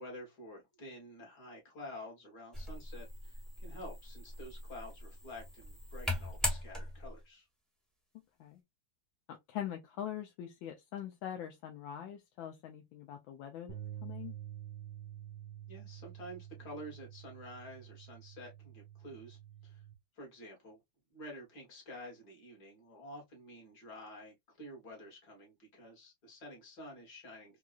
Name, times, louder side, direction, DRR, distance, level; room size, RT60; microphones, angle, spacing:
voice 1, 0.0-7.5 15.7-19.8 20.2-20.8 21.1-27.6, left 1 dB, 55° left, 2.2 m, -50 dB
sound 1, 2.5-7.2, left 1 dB, ahead, 0.6 m, -40 dB
voice 2, 9.3-13.7 14.0-14.3, left 10 dB, 80° left, 1.3 m, -43 dB
sound 2, 13.7-19.9, right 11 dB, 75° right, 1.4 m, -48 dB
4.4 x 2.4 x 2.4 m
omnidirectional pair, 2.2 m